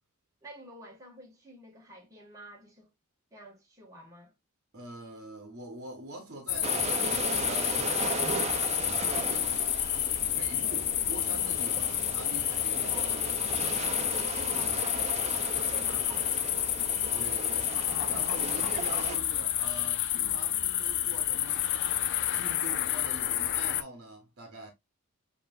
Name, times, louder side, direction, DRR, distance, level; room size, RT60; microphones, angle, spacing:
voice 1, 0.4-2.9 3.3-4.3 12.9-13.3 14.1-16.7, right 1 dB, 15° right, 1.4 m, -49 dB
voice 2, 4.7-8.2 8.8-13.3 13.6-13.9 14.5-15.0 17.1-17.8 18.0-21.7 22.3-24.7, right 1 dB, 50° right, 1.0 m, -45 dB
sound 1, 6.5-23.8, left 12 dB, 55° left, 0.5 m, -30 dB
sound 2, 6.6-19.2, right 4 dB, 30° right, 0.6 m, -37 dB
sound 3, 17.6-21.0 21.3-21.4, left 4 dB, 75° left, 0.9 m, -45 dB
7.5 x 2.8 x 2.5 m
head